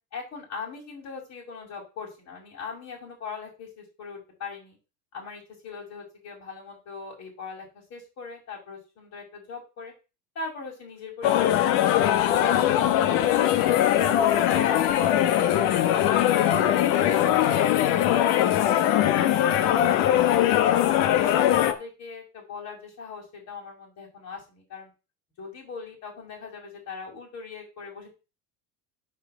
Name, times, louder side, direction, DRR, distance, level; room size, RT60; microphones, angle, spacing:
voice 1, 0.1-4.8 5.1-9.9 10.3-14.1 14.5-18.7 19.2-24.9 25.4-28.1, left 5 dB, 40° left, -1 dB, 6.1 m, -40 dB
sound 1, 11.2-21.7, left 11 dB, 65° left, 1.5 m, -21 dB
8.8 x 5.1 x 7.8 m, 0.30 s
cardioid pair, 150°, 44 cm